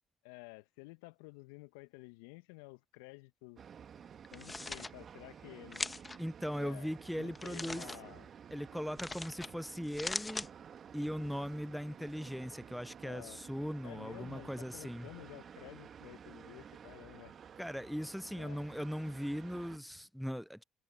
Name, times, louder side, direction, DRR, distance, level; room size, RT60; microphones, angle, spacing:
voice 1, 0.2-3.6 4.3-5.9 6.5-6.9 7.2-8.3 13.0-13.4 13.8-17.4 18.4-18.6, left 27 dB, 75° left, 1.4 m, -52 dB
sound 1, 3.6-19.8, right 8 dB, 45° right, 1.9 m, -53 dB
sound 2, 4.2-4.9 5.7-6.2 7.3-8.0 9.0-9.5 9.8-10.5, left 3 dB, 20° left, 1.3 m, -40 dB
voice 2, 6.2-7.9 8.5-10.5 10.9-15.1 17.6-20.6, equal, ahead, 0.4 m, -39 dB
hypercardioid pair, 55°, 0 cm